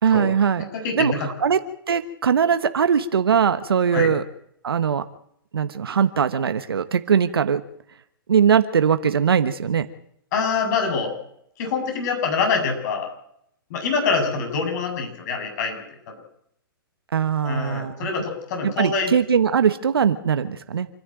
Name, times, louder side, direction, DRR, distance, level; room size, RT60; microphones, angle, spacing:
voice 1, 0.0-0.6 0.9-1.6 1.9-4.2 4.6-5.0 5.5-7.6 8.3-9.9 17.1-18.1 18.6-20.9, right 7 dB, 80° right, 11 dB, 1.3 m, -20 dB
voice 2, 0.7-1.3 3.9-4.1 10.3-11.1 11.6-13.1 13.7-16.2 17.4-19.1, left 5 dB, 50° left, 4 dB, 7.6 m, -25 dB
27.5 x 11.0 x 9.1 m, 0.72 s
hypercardioid pair, 125°, 12 cm